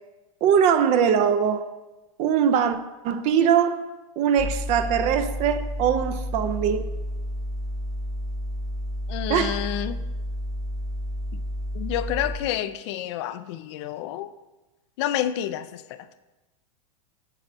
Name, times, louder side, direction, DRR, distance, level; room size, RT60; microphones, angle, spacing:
voice 1, 0.4-1.7 2.2-2.8 3.0-3.8 4.2-6.9 9.3-9.7, right 8 dB, 40° right, 0.5 m, -21 dB
sound 1, 4.4-12.4, equal, 15° right, 0.9 m, -31 dB
voice 2, 9.1-10.0 11.3-11.4 11.7-14.3 15.0-16.1, left 12 dB, 55° left, 0.5 m, -29 dB
8.1 x 7.1 x 2.7 m
hypercardioid pair, 120°, 18 cm